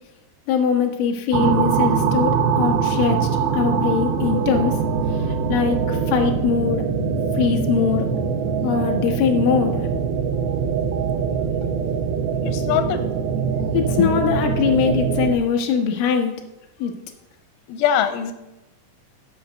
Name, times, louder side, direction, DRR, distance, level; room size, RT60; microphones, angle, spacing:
voice 1, 0.5-3.2 3.5-4.7 5.5-6.8 7.4-8.1 8.6-9.8 13.7-16.3 16.8-16.9, left 6 dB, 65° left, 3 dB, 2.2 m, -21 dB
sound 1, 1.3-15.4, right 6 dB, 85° right, 2.1 m, -23 dB
voice 2, 12.4-13.1 17.7-18.3, left 9 dB, 90° left, 9 dB, 3.3 m, -22 dB
12.0 x 5.7 x 6.7 m, 0.98 s
omnidirectional pair, 5.6 m